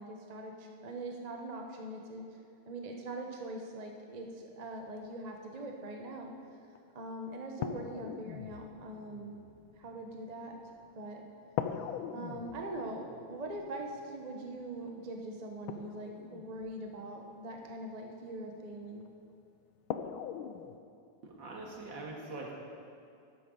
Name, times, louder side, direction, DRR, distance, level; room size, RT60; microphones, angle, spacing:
voice 1, 0.0-2.2 2.7-6.3 6.9-9.4 9.7-10.5 10.9-11.2 12.1-19.1, right 1 dB, 35° right, 1 dB, 0.6 m, -42 dB
sound 1, 6.7-6.8 7.6-11.0 11.6-17.7 19.1-19.2 19.9-20.8, left 8 dB, 75° left, 1.3 m, -42 dB
voice 2, 21.2-22.5, right 2 dB, 60° right, -2 dB, 2.5 m, -43 dB
13.5 x 12.5 x 3.9 m, 2.5 s
omnidirectional pair, 2.4 m